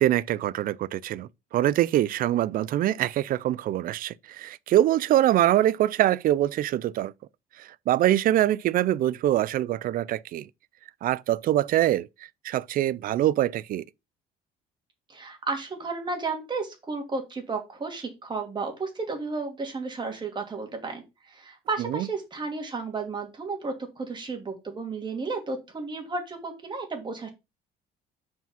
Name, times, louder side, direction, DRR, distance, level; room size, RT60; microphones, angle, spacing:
voice 1, 0.0-7.1 7.6-10.5 11.0-12.1 12.4-13.8 21.9-22.1, right 13 dB, 60° right, 0.4 m, -24 dB
voice 2, 15.1-27.3, right 3 dB, 25° right, 2.5 m, -33 dB
5.8 x 4.9 x 5.7 m
cardioid pair, 110°, 17 cm